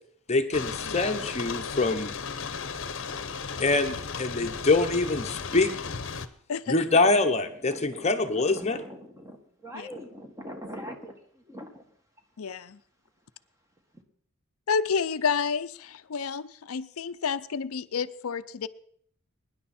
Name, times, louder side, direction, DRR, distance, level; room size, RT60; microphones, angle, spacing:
voice 1, 0.3-2.1 3.6-5.7 6.7-8.8, left 3 dB, 30° left, 6 dB, 0.9 m, -24 dB
sound 1, 0.5-6.3, left 5 dB, 60° left, 0.9 m, -35 dB
voice 2, 7.5-11.8 13.9-14.0, equal, 15° right, 3 dB, 1.7 m, -44 dB
voice 3, 12.4-12.8 14.7-18.7, left 6 dB, 80° left, 13 dB, 0.5 m, -30 dB
22.5 x 10.5 x 4.3 m, 0.62 s
head